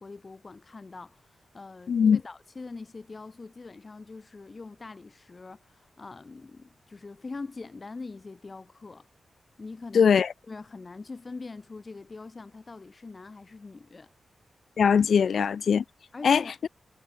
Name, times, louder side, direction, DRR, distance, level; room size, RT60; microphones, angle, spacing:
voice 1, 0.0-9.1 9.6-10.1 10.4-14.1 16.1-16.5, left 3 dB, 35° left, 2.4 m, -43 dB
voice 2, 1.9-2.2 9.9-10.3 14.8-15.8 16.2-16.4, left 6 dB, 75° left, 0.6 m, -21 dB
wide cardioid pair, 90°, 0 cm